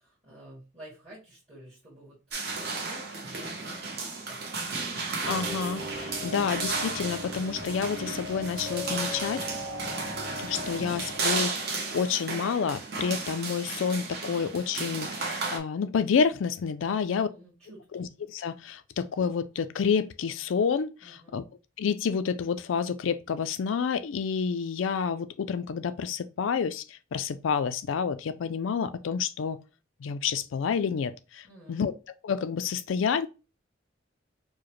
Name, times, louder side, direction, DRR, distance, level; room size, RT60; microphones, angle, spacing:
voice 1, 0.0-4.7 16.8-18.1 21.0-21.4 31.4-31.9, right 1 dB, 30° right, 1.4 m, -51 dB
sound 1, 2.3-15.6, right 4 dB, 55° right, 0.9 m, -34 dB
sound 2, 5.2-11.3, left 1 dB, 15° right, 0.9 m, -39 dB
voice 2, 5.3-9.4 10.4-17.3 17.9-21.4 21.8-29.6 30.0-31.9 32.2-33.3, left 6 dB, 85° left, 0.4 m, -29 dB
4.8 x 2.1 x 3.0 m
head